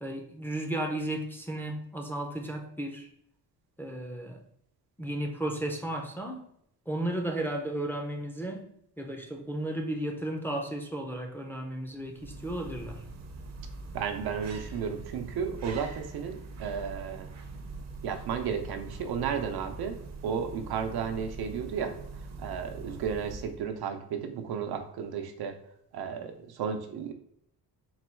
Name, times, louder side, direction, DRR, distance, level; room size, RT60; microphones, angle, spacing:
voice 1, 0.0-3.1 3.8-4.4 5.0-6.4 6.9-8.6 9.0-13.0, right 1 dB, 5° left, 1 dB, 0.4 m, -34 dB
sound 1, 11.9-23.8, right 3 dB, 45° right, 0.6 m, -43 dB
voice 2, 13.9-17.3 18.0-22.0 22.4-25.6 25.9-27.1, right 7 dB, 90° right, 6 dB, 0.6 m, -33 dB
4.0 x 2.2 x 4.3 m, 0.70 s
wide cardioid pair, 165°, 37 cm